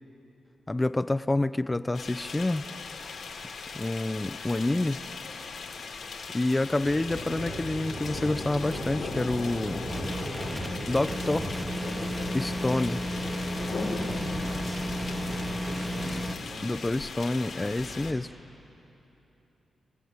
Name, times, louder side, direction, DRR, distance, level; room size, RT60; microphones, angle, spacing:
voice 1, 0.7-2.7 3.7-5.0 6.3-9.9 10.9-11.6 12.3-13.0 16.6-18.3, left 2 dB, 20° left, 12 dB, 0.5 m, -28 dB
sound 1, 1.9-18.1, left 4 dB, 80° left, 2.6 m, -38 dB
sound 2, 6.8-16.4, right 2 dB, 80° right, 4.2 m, -40 dB
sound 3, 9.9-16.3, equal, 5° right, 0.9 m, -34 dB
voice 2, 14.5-16.8, right 1 dB, 60° right, 2 dB, 3.1 m, -44 dB
24.0 x 15.5 x 9.5 m, 3.0 s
cardioid pair, 60°, 0 cm